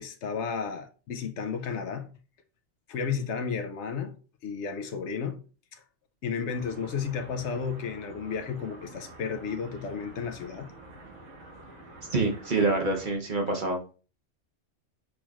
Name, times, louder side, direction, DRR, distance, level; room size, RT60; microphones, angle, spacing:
voice 1, 0.0-2.1 2.9-4.2 4.4-5.4 6.2-10.7, left 6 dB, 70° left, 0.9 m, -33 dB
sound 1, 6.5-13.2, right 1 dB, 80° right, 1.7 m, -48 dB
voice 2, 12.1-13.9, right 3 dB, 45° right, 0.9 m, -26 dB
6.2 x 3.0 x 2.4 m
omnidirectional pair, 1.3 m